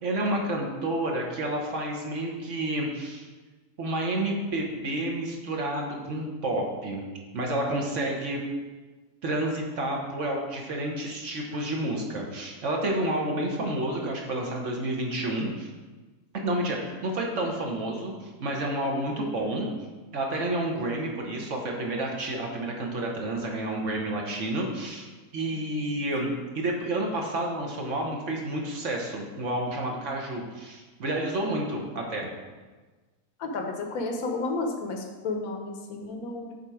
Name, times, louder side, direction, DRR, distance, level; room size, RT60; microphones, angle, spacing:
voice 1, 0.0-3.3 3.8-7.0 7.3-8.4 9.2-15.7 16.3-19.7 20.1-25.1 25.3-26.3 26.5-32.3, right 1 dB, 55° right, 0 dB, 1.2 m, -30 dB
voice 2, 33.4-36.6, left 3 dB, 70° left, 3 dB, 1.3 m, -32 dB
6.7 x 4.3 x 4.8 m, 1.3 s
omnidirectional pair, 1.6 m